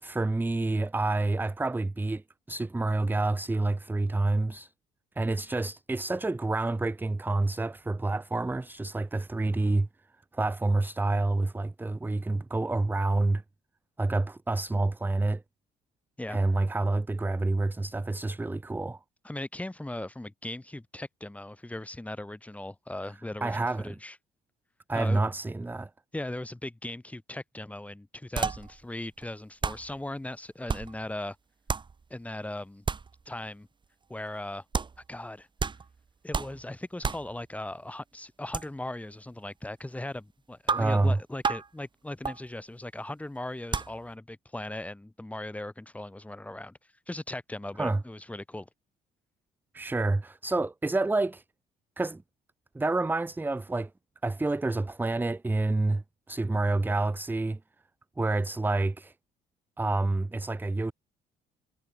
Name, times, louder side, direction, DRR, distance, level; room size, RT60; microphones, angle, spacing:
voice 1, 0.0-4.7 5.2-9.9 10.3-13.4 14.0-15.4 16.3-19.0 23.4-24.0 24.9-25.9 40.8-41.2 47.8-48.0 49.7-51.4 52.0-52.2 52.7-53.9 54.2-57.6 58.2-59.1 59.8-60.9, right 2 dB, 10° right, 1.2 m, -28 dB
voice 2, 19.2-24.2 24.9-25.2 26.1-31.4 32.1-32.8 33.3-33.7 34.1-34.6 35.1-35.5 36.2-46.8 47.1-48.7, left 1 dB, 10° left, 6.4 m, -38 dB
sound 1, 28.4-28.8 29.2-29.3 29.6-30.0 30.7-31.1 31.7-32.0 32.8-33.2 34.7-35.0 35.6-36.0 36.3-36.7 37.0-37.3 38.5-38.7 40.7-41.0 41.4-41.7 42.2-42.4 43.7-44.0, right 5 dB, 30° right, 6.1 m, -31 dB
cardioid pair, 110°, 17 cm